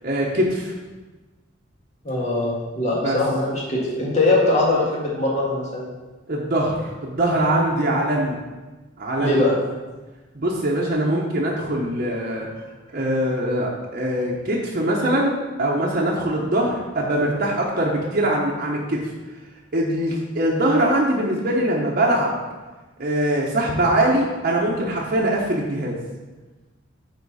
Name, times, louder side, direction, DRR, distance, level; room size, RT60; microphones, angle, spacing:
voice 1, 0.0-0.7 3.0-3.2 6.3-8.4 9.0-9.4 10.3-12.5 12.9-15.3 15.6-19.0 19.7-22.4 23.0-26.0, right 1 dB, 45° right, -4 dB, 1.0 m, -22 dB
voice 2, 2.0-5.9 9.2-9.5, left 2 dB, 35° left, -4 dB, 1.9 m, -21 dB
9.5 x 4.3 x 4.2 m, 1.2 s
head